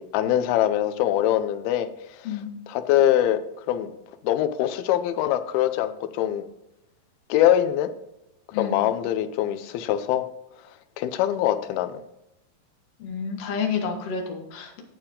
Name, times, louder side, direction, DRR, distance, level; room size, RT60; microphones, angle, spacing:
voice 1, 0.0-1.9 2.1-2.2 2.7-3.4 3.7-3.9 4.2-6.4 7.3-7.9 8.6-10.2 11.0-12.0, left 12 dB, 90° left, 11 dB, 2.6 m, -23 dB
voice 2, 13.0-14.8, left 6 dB, 55° left, 2 dB, 2.1 m, -30 dB
9.1 x 8.7 x 3.7 m, 0.85 s
omnidirectional pair, 4.3 m